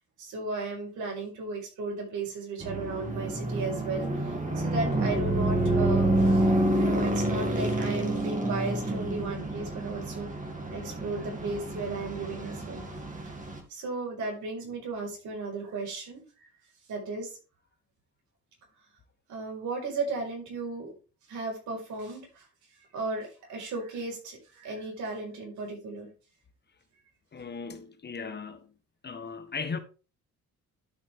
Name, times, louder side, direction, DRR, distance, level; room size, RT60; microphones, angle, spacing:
voice 1, 0.2-10.3 10.7-12.9 13.2-13.4 13.7-16.2 16.9-17.4 19.3-20.9 21.3-22.4 22.9-26.1, right 3 dB, 75° right, 5.0 m, -35 dB
sound 1, 2.6-13.6, right 1 dB, 25° right, 2.4 m, -28 dB
voice 2, 27.3-28.7 29.0-29.8, left 5 dB, 35° left, 1.2 m, -37 dB
12.0 x 5.3 x 3.6 m
cardioid pair, 90°, 30 cm